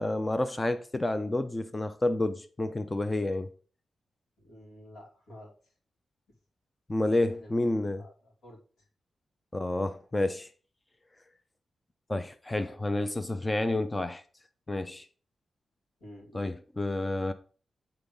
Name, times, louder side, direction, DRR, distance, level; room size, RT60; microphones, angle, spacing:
voice 1, 0.0-3.5 6.9-8.0 9.5-10.5 12.1-14.2 14.7-15.1 16.3-17.3, left 2 dB, 15° left, 0.4 m, -29 dB
voice 2, 4.4-5.7 7.3-7.6 7.9-8.9 12.5-13.2 16.0-16.5, left 1 dB, 85° left, 2.7 m, -51 dB
8.4 x 3.9 x 5.3 m
wide cardioid pair, 170°, 0 cm